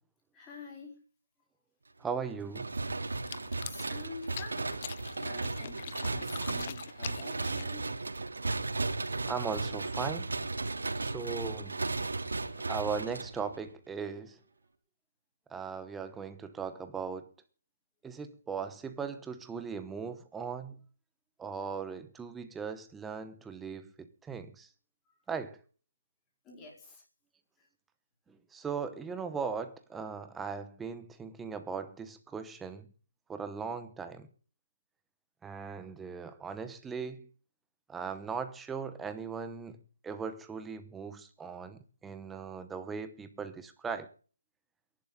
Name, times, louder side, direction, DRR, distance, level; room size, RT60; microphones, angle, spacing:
voice 1, 0.3-0.9 3.1-4.8 5.2-7.9 26.4-27.0, left 3 dB, 10° left, 4.6 m, -48 dB
voice 2, 2.0-2.7 9.3-10.3 11.0-11.8 12.7-14.4 15.5-17.3 18.0-20.8 21.4-24.7 25.3-25.6 28.3-32.9 33.3-34.3 35.4-37.3 37.9-44.1, right 5 dB, 5° right, 1.0 m, -38 dB
sound 1, 2.5-13.7, right 3 dB, 75° right, 2.8 m, -35 dB
sound 2, 3.1-8.0, left 10 dB, 30° left, 0.7 m, -45 dB
28.0 x 11.5 x 3.7 m
figure-of-eight pair, 165°, 0 cm